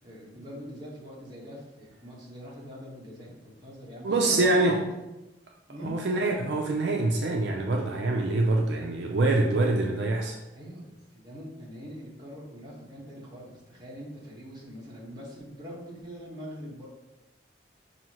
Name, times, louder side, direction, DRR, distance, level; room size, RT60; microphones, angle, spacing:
voice 1, 0.0-4.9 5.7-6.0 10.5-16.9, equal, 25° right, -6 dB, 1.3 m, -43 dB
voice 2, 4.0-4.8 5.8-10.4, right 2 dB, 70° right, 1 dB, 0.4 m, -25 dB
5.7 x 2.7 x 2.9 m, 0.99 s
head